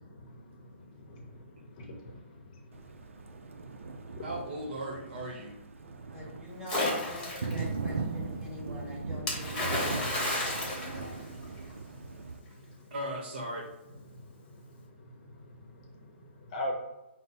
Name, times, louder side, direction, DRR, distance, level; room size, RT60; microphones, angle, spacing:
voice 1, 0.2-2.8 3.5-3.8 4.2-4.3 6.2-6.4 7.5-8.6 9.3-12.9 13.9-16.8, left 1 dB, 35° left, 0 dB, 0.8 m, -45 dB
Thunder, 2.7-12.4, right 4 dB, 90° right, 0.4 m, -39 dB
voice 2, 4.2-5.5 12.9-13.7, right 1 dB, 55° right, 0 dB, 1.1 m, -37 dB
voice 3, 6.1-11.3, equal, 10° right, -7 dB, 1.5 m, -45 dB
Splash splatter, 6.7-7.6 9.3-11.7, left 2 dB, 10° left, 1.1 m, -32 dB
5.2 x 2.0 x 4.3 m, 0.96 s
hypercardioid pair, 155°, 7 cm